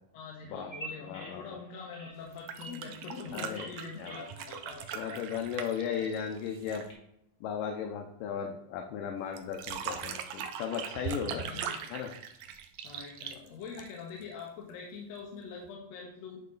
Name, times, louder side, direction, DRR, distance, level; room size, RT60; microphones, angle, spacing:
voice 1, 0.1-5.3 5.9-6.0 11.3-11.9 12.8-16.4, left 5 dB, 65° left, -1 dB, 1.8 m, -44 dB
Bird vocalization bird call bird song, 0.6-6.9, right 1 dB, 35° left, 2.0 m, -50 dB
voice 2, 1.0-1.5 3.3-3.7 4.0-4.2 4.9-6.8 7.4-11.5 11.9-12.1, left 7 dB, 85° left, 4 dB, 2.3 m, -36 dB
sound 1, 2.3-6.9 9.4-14.2 15.6-15.7, right 8 dB, 80° right, 1.6 m, -40 dB
9.2 x 3.2 x 3.9 m, 0.80 s
omnidirectional pair, 3.8 m